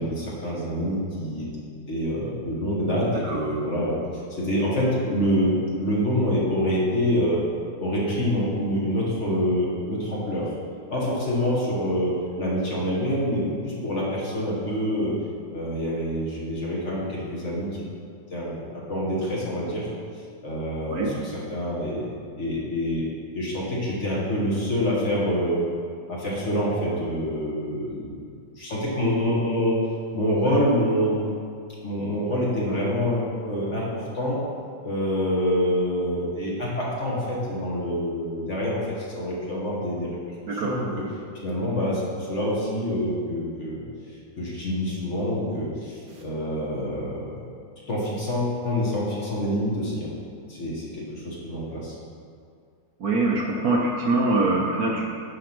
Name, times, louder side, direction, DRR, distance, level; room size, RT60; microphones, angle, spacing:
voice 1, 0.0-1.5 1.9-4.0 4.3-7.4 7.8-10.5 10.9-15.2 15.5-17.8 18.3-19.9 20.4-22.0 22.4-23.0 23.3-25.6 26.1-28.2 28.5-29.8 30.1-31.2 31.8-34.4 34.8-40.1 40.5-40.9 41.4-43.8 44.4-47.4 47.9-50.1 50.5-52.0, equal, 40° left, -6 dB, 1.8 m, -26 dB
voice 2, 53.0-55.1, right 2 dB, 60° right, -1 dB, 1.2 m, -23 dB
10.0 x 3.8 x 6.0 m, 2.3 s
omnidirectional pair, 2.0 m